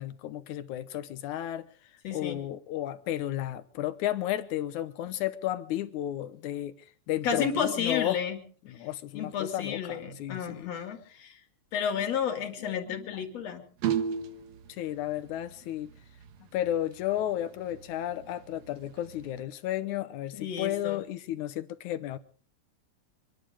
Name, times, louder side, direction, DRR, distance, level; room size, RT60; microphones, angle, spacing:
voice 1, 0.0-1.7 2.1-6.7 7.1-8.2 8.7-10.7 11.8-11.9 12.6-13.2 14.8-15.9 16.5-22.2, left 13 dB, 75° left, 2.4 m, -33 dB
voice 2, 2.0-2.4 7.2-8.4 9.1-11.4 11.7-13.6 20.3-21.0, left 7 dB, 55° left, 3.4 m, -32 dB
sound 1, 13.8-14.6 16.3-16.4 16.6-16.7 17.2-17.3 17.7-17.8 18.6-19.4, right 8 dB, 65° right, 2.2 m, -30 dB
25.5 x 11.0 x 5.0 m
omnidirectional pair, 3.5 m